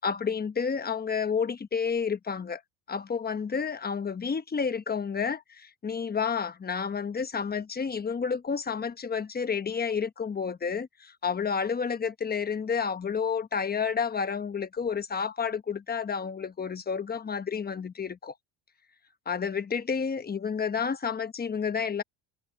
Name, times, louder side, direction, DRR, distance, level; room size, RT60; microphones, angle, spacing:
voice 1, 0.0-2.6 2.9-18.3 19.3-22.0, left 6 dB, 20° left, 1.0 m, -30 dB
cardioid pair, 125°, 44 cm